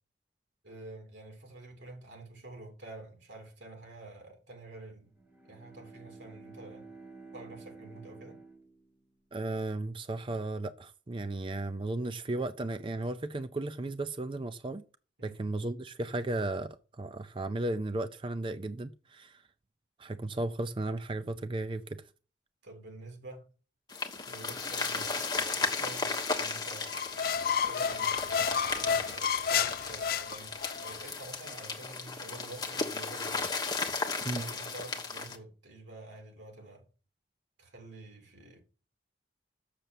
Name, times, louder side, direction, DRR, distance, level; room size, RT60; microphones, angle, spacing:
voice 1, 0.6-5.1 5.5-6.9 7.3-8.4 15.2-15.4 22.6-23.5 24.3-26.9 27.6-33.5 34.4-36.9 37.6-38.6, right 2 dB, 80° right, 3.3 m, -48 dB
Bowed string instrument, 5.1-9.5, right 3 dB, 10° right, 1.7 m, -51 dB
voice 2, 9.3-14.8 15.2-19.4 20.0-22.0 34.2-34.4, right 2 dB, 30° right, 0.5 m, -35 dB
sound 1, 23.9-35.4, left 4 dB, 20° left, 1.3 m, -35 dB
sound 2, 26.9-31.0, left 7 dB, 55° left, 0.4 m, -31 dB
6.8 x 6.8 x 7.5 m
head